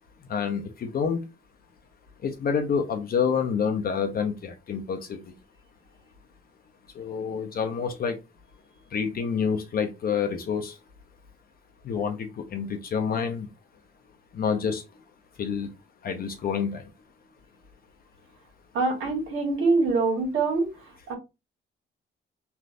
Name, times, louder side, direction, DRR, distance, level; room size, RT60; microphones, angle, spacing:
voice 1, 0.3-1.2 2.2-5.3 6.9-8.2 8.9-10.8 11.8-13.5 14.3-14.8 15.4-15.7 16.0-16.8, left 6 dB, 50° left, 0.6 m, -28 dB
voice 2, 18.7-20.7 21.1-21.2, right 3 dB, 80° right, 1.4 m, -24 dB
3.3 x 2.5 x 2.5 m
cardioid pair, 90°, 20 cm